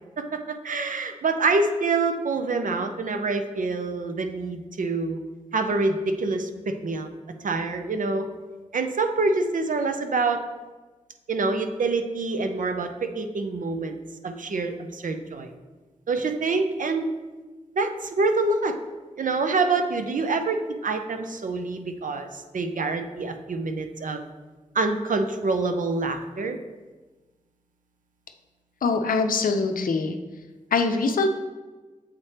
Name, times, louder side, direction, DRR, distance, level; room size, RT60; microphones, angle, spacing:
voice 1, 0.2-5.2 5.5-7.1 7.4-8.3 8.7-10.4 11.3-14.0 14.2-15.5 16.1-17.1 17.8-18.7 19.2-24.2 24.7-26.6, right 3 dB, 70° right, 7 dB, 0.6 m, -26 dB
voice 2, 28.8-30.1 30.7-31.3, left 4 dB, 90° left, 6 dB, 0.5 m, -23 dB
7.4 x 3.2 x 4.3 m, 1.3 s
cardioid pair, 40°, 14 cm